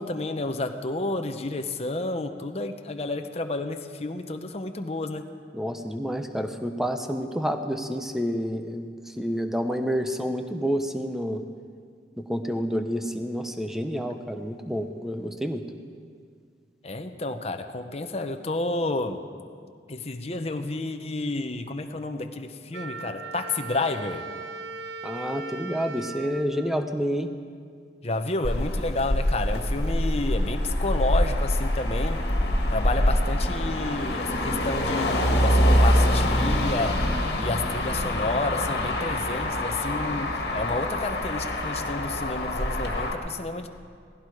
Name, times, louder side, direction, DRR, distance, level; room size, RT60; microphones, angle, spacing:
voice 1, 0.0-5.3 16.8-19.2 19.9-24.3 28.0-32.3 32.7-37.1 37.4-43.7, left 2 dB, 35° left, 6 dB, 0.9 m, -30 dB
voice 2, 5.5-11.4 12.2-15.6 25.0-27.3, equal, ahead, 6 dB, 0.8 m, -29 dB
Wind instrument woodwind instrument, 22.7-27.5, right 3 dB, 85° right, 0.6 m, -39 dB
Motor vehicle (road), 28.4-43.1, left 1 dB, 60° left, 2.0 m, -25 dB
18.0 x 16.0 x 4.9 m, 2.1 s
head